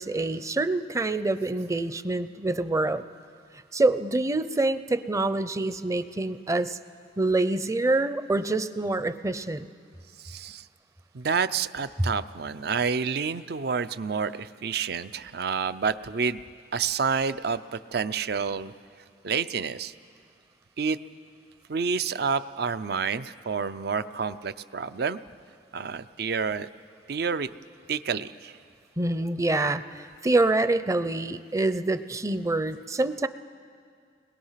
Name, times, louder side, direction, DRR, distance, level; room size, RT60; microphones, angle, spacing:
voice 1, 0.0-3.0 3.7-6.8 7.2-9.7 29.0-33.3, right 2 dB, 20° right, 12 dB, 0.6 m, -26 dB
voice 2, 10.2-10.6 11.1-16.4 16.7-18.7 19.2-19.9 20.8-21.0 21.7-25.2 25.7-26.7 27.1-27.5 27.9-28.6, right 5 dB, 65° right, 14 dB, 0.6 m, -29 dB
30.0 x 21.5 x 5.8 m, 2.2 s
head